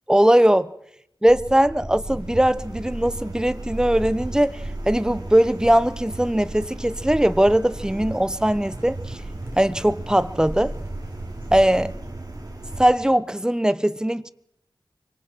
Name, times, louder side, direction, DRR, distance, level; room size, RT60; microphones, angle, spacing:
voice 1, 0.1-0.7 1.2-9.2 9.6-10.7 11.5-11.9 12.8-14.3, right 1 dB, 10° right, 0.9 m, -20 dB
sound 1, 1.3-12.9, right 1 dB, 50° right, 3.1 m, -35 dB
sound 2, 2.0-12.0, right 2 dB, 85° right, 2.6 m, -47 dB
sound 3, 6.6-13.0, right 1 dB, 30° right, 4.0 m, -44 dB
25.0 x 24.5 x 4.6 m
wide cardioid pair, 50°, 9 cm